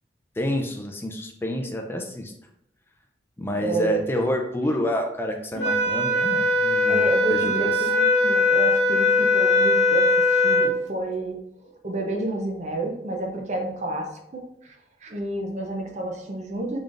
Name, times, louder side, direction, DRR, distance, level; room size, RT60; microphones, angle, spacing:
voice 1, 0.4-2.3 3.4-7.9, left 1 dB, 15° left, 3 dB, 0.4 m, -28 dB
voice 2, 3.6-4.0 5.5-5.7 6.9-11.4 11.6-14.7 15.0-16.8, right 2 dB, 40° right, 1 dB, 0.6 m, -30 dB
sound 1, 5.6-10.8, left 2 dB, 80° left, 0.8 m, -20 dB
3.8 x 3.3 x 2.5 m, 0.77 s
head